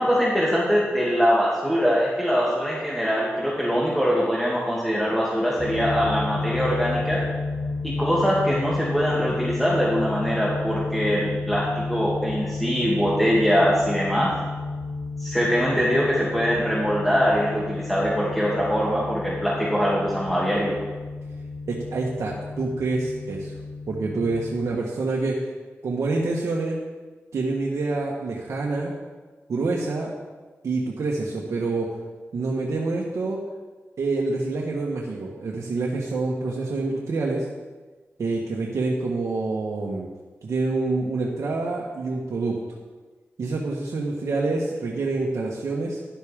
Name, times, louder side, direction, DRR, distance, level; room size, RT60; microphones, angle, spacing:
voice 1, 0.0-7.2 7.8-14.3 15.2-20.8, equal, ahead, -6 dB, 2.6 m, -23 dB
sound 1, 5.6-24.6, left 3 dB, 65° left, 3.5 m, -32 dB
voice 2, 21.7-23.6 23.9-25.5 25.8-26.8 27.3-28.9 29.5-30.2 30.6-31.9 32.3-33.4 34.0-37.5 38.2-40.1 40.4-42.6 43.4-46.0, right 3 dB, 80° right, -3 dB, 1.4 m, -27 dB
12.0 x 11.5 x 3.7 m, 1.3 s
cardioid pair, 45°, 5 cm